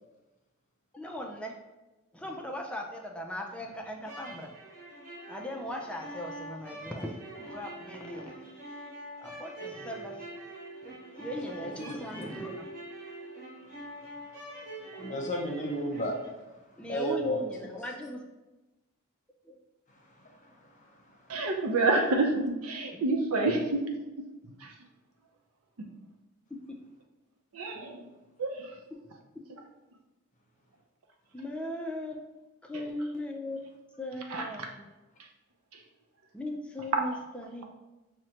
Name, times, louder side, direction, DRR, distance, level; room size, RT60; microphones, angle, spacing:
voice 1, 0.9-1.6 2.1-4.5 5.3-8.5 9.2-10.4 11.2-12.7 16.8-18.2 19.5-19.6 22.9-23.0 23.5-23.6 26.7-26.8 31.3-32.2 32.6-33.6 34.0-34.8 36.3-37.6, left 1 dB, 5° left, 0.4 m, -38 dB
sound 1, 4.0-16.3, right 1 dB, 35° right, 1.1 m, -44 dB
voice 2, 11.4-12.0 14.9-16.2 16.9-17.4, right 1 dB, 35° left, 0.7 m, -33 dB
voice 3, 21.3-24.8 25.8-25.9 27.5-28.1 28.4-28.8 32.7-32.9 34.3-34.7 35.2-35.3 35.7-35.8 36.9-37.2, right 3 dB, 85° right, 0.6 m, -29 dB
6.1 x 2.1 x 2.8 m
head